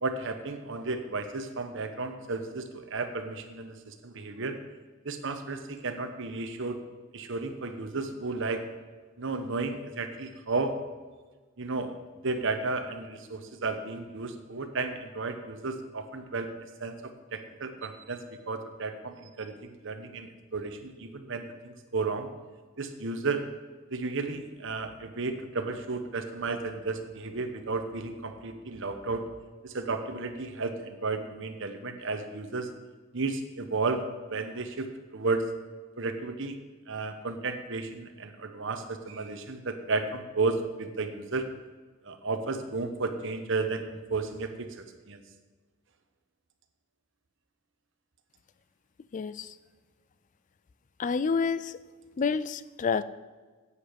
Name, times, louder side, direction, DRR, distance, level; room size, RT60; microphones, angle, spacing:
voice 1, 0.0-3.7 4.0-4.6 5.0-6.8 7.1-8.7 9.2-10.8 11.6-12.0 12.2-16.5 16.8-17.0 17.3-18.2 18.5-22.3 22.8-23.4 23.9-29.2 29.6-32.7 33.1-35.4 36.0-36.6 36.9-41.5 42.1-44.7 45.1-45.2, right 3 dB, 65° right, 8 dB, 1.1 m, -33 dB
voice 2, 49.1-49.5 51.0-51.7 52.2-53.0, left 5 dB, 40° left, 16 dB, 0.4 m, -28 dB
10.0 x 8.4 x 5.2 m, 1.4 s
head